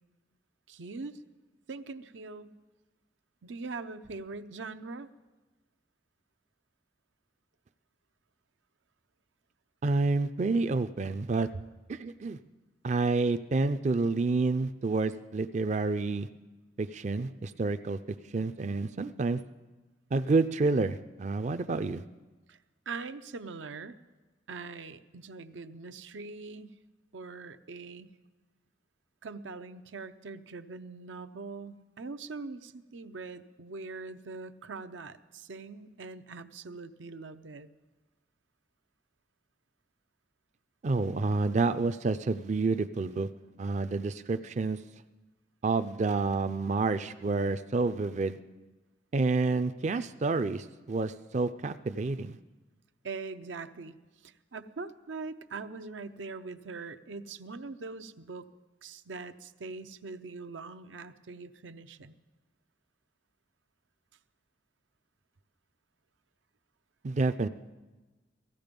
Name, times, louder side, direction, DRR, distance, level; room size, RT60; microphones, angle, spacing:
voice 1, 0.7-1.2 1.7-2.5 3.4-5.1 22.5-22.6 22.9-24.0 24.5-26.7 27.1-28.1 29.2-37.7 53.0-54.0 54.2-58.5 58.8-62.1, right 4 dB, 90° right, 10 dB, 0.7 m, -42 dB
voice 2, 9.8-11.5 11.9-12.4 12.8-16.3 16.8-18.0 18.3-19.4 20.1-22.0 40.8-43.3 43.6-44.8 45.6-48.4 49.1-52.4 67.0-67.5, right 3 dB, 40° right, 10 dB, 0.4 m, -29 dB
17.0 x 15.0 x 5.2 m, 1.2 s
head